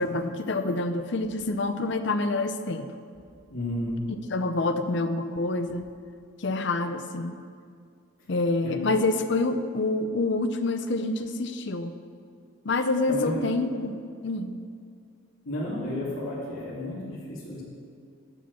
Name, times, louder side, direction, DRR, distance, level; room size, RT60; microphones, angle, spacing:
voice 1, 0.0-2.9 4.3-5.9 6.4-7.4 8.3-11.9 12.6-14.6, left 2 dB, 55° left, 9 dB, 0.6 m, -27 dB
voice 2, 3.5-4.0 8.6-8.9 13.1-13.4 15.4-17.6, left 1 dB, 75° left, -6 dB, 3.0 m, -32 dB
12.5 x 5.2 x 7.0 m, 2.2 s
head